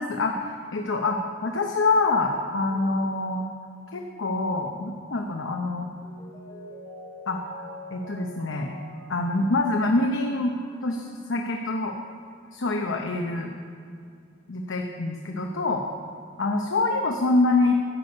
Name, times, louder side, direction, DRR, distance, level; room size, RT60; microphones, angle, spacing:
voice 1, 0.0-3.4 3.9-5.9 7.3-7.6 7.9-8.7 9.1-10.5 10.8-11.9 12.5-13.5 14.5-15.8 16.4-17.7, left 2 dB, 90° left, 2 dB, 0.8 m, -25 dB
Mallet percussion, 6.0-11.5 11.9-12.0, left 1 dB, 20° left, 2.8 m, -45 dB
11.0 x 8.2 x 5.4 m, 2.3 s
head